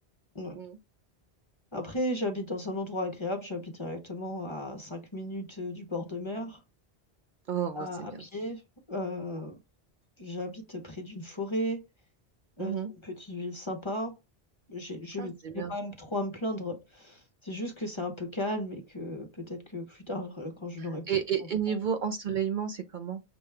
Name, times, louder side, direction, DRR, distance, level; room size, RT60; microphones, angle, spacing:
voice 1, 1.7-6.6 7.7-8.6 8.9-9.6 10.2-11.8 12.6-14.2 14.7-21.1, left 1 dB, 30° left, 0.8 m, -35 dB
voice 2, 7.5-8.2 12.6-12.9 15.2-15.7 20.8-23.2, right 8 dB, 55° right, 0.7 m, -32 dB
6.0 x 2.3 x 3.2 m
omnidirectional pair, 1.1 m